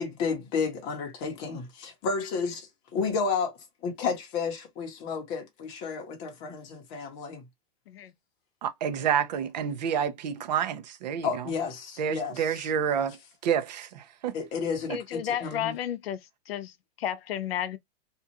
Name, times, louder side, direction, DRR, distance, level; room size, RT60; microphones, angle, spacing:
voice 1, 0.0-3.5 3.8-7.4 11.2-12.7 14.3-15.8, left 5 dB, 20° left, 0.8 m, -32 dB
voice 2, 8.6-11.5 12.0-13.2 13.4-14.3, right 8 dB, 45° right, 0.6 m, -29 dB
voice 3, 14.9-16.2 16.5-17.8, left 10 dB, 75° left, 0.7 m, -32 dB
2.6 x 2.4 x 2.7 m
supercardioid pair, 175°, 30 cm